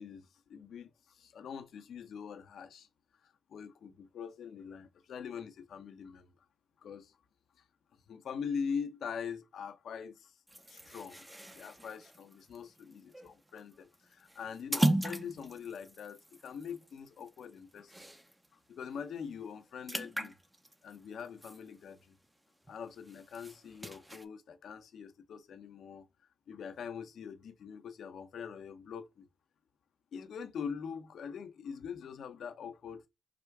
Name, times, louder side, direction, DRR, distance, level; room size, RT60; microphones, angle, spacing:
voice 1, 0.0-2.9 3.2-6.3 6.8-7.2 7.6-7.7 8.1-10.4 10.7-11.3 11.5-17.9 18.7-20.3 20.8-22.1 22.7-26.1 26.5-29.3 30.1-33.1, left 6 dB, 65° left, 0.8 m, -43 dB
sound 1, 10.5-18.5 18.9-19.0 19.3-22.3 22.7-24.3, right 1 dB, 10° right, 0.6 m, -38 dB
4.9 x 2.2 x 4.7 m
cardioid pair, 90°, 0 cm